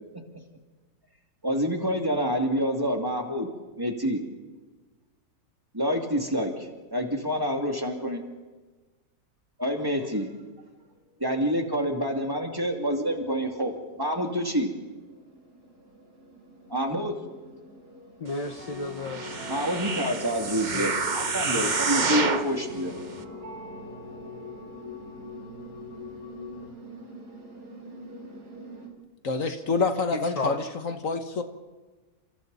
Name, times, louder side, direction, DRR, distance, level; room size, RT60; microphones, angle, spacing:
voice 1, 1.4-3.5 3.8-4.2 5.7-8.3 9.6-10.3 11.2-14.7 16.7-17.2 19.5-22.9, equal, 15° right, 2 dB, 2.5 m, -27 dB
sound 1, 10.8-28.9, right 2 dB, 85° right, 4.5 m, -48 dB
voice 2, 18.2-19.5 20.7-21.1 21.6-21.9 30.1-30.6, left 3 dB, 40° left, 7 dB, 0.5 m, -34 dB
sound 2, 18.4-26.7, left 4 dB, 60° right, 5.8 m, -42 dB
sound 3, 19.0-22.5 23.1-23.2, right 4 dB, 30° right, 1.1 m, -28 dB
voice 3, 29.2-31.4, left 4 dB, 55° left, 7 dB, 1.6 m, -27 dB
30.0 x 28.0 x 4.1 m, 1.3 s
omnidirectional pair, 1.7 m